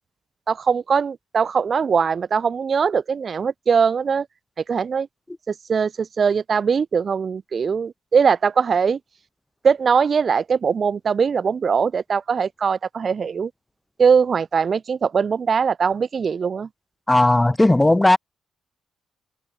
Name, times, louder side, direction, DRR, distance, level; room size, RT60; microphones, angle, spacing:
voice 1, 0.5-4.3 4.7-5.1 5.5-9.0 9.6-13.5 14.0-16.7, right 6 dB, 45° right, 1.2 m, -21 dB
voice 2, 17.1-18.2, left 2 dB, 10° left, 0.9 m, -16 dB
cardioid pair, 90°, 0 cm